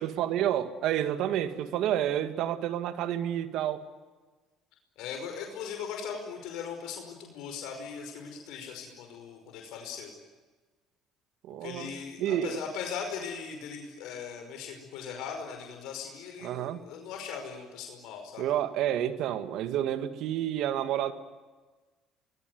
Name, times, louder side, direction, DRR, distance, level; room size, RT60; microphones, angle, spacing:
voice 1, 0.0-3.8 11.4-11.9 12.2-12.6 16.4-16.8 18.4-21.1, right 11 dB, 70° right, 10 dB, 2.1 m, -29 dB
voice 2, 5.0-10.1 11.6-18.4, left 6 dB, 80° left, 3 dB, 5.3 m, -39 dB
25.0 x 21.5 x 9.5 m, 1.3 s
supercardioid pair, 90°, 0 cm